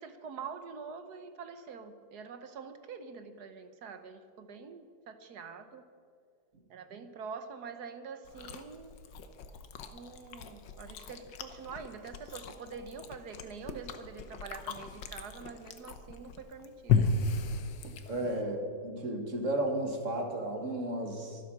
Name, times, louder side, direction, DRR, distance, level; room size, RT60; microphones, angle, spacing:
voice 1, 0.0-5.8 6.7-9.0 9.9-17.0 18.0-18.3, right 5 dB, 60° right, 9 dB, 1.4 m, -45 dB
Chewing mastication, 8.2-18.4, left 5 dB, 75° left, 1.6 m, -35 dB
voice 2, 17.8-21.4, right 1 dB, 45° right, 4 dB, 1.8 m, -34 dB
23.5 x 8.3 x 6.1 m, 2.1 s
omnidirectional pair, 2.0 m